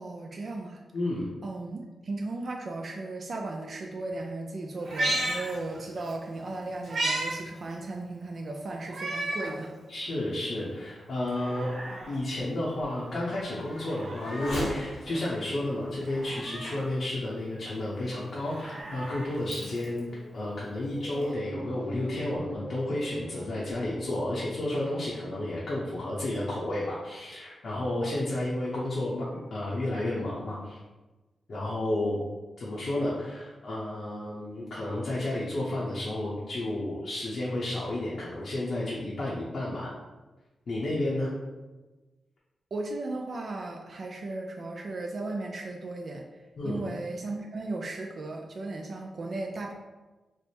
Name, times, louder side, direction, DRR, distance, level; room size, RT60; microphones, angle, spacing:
voice 1, 0.0-0.8 1.4-9.7 42.7-46.2 46.6-49.7, right 2 dB, 50° right, 1 dB, 0.3 m, -36 dB
voice 2, 0.9-1.3 9.9-11.7 12.1-20.1 20.3-30.8 31.5-32.2 32.6-39.9 40.7-41.3 46.6-46.8, left 1 dB, 60° left, -6 dB, 0.7 m, -31 dB
Meow, 4.8-6.1 6.5-7.3 7.7-7.8 8.9-9.6 10.1-10.2 11.1-12.1 13.7-14.7 16.0-16.9 18.3-20.0 21.2-21.3, right 1 dB, 65° right, 0.9 m, -34 dB
Race car auto racing / Accelerating revving vroom, 10.3-18.2 18.8-18.9 19.5-24.3, left 1 dB, 75° left, 1.1 m, -42 dB
3.3 x 2.1 x 4.2 m, 1.2 s
wide cardioid pair, 105°, 0 cm